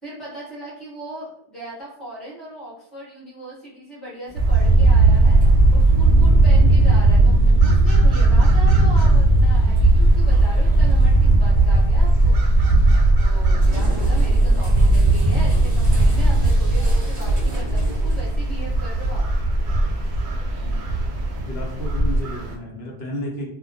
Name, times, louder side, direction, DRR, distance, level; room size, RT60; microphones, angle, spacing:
voice 1, 0.0-12.4 13.2-19.3, right 1 dB, ahead, -8 dB, 0.9 m, -37 dB
sound 1, 4.3-19.2, right 1 dB, 40° right, 0.6 m, -40 dB
sound 2, 4.4-22.5, right 2 dB, 85° right, 0.9 m, -16 dB
voice 2, 21.4-23.5, equal, 70° left, -2 dB, 0.9 m, -32 dB
2.2 x 2.1 x 2.6 m, 0.72 s
omnidirectional pair, 1.1 m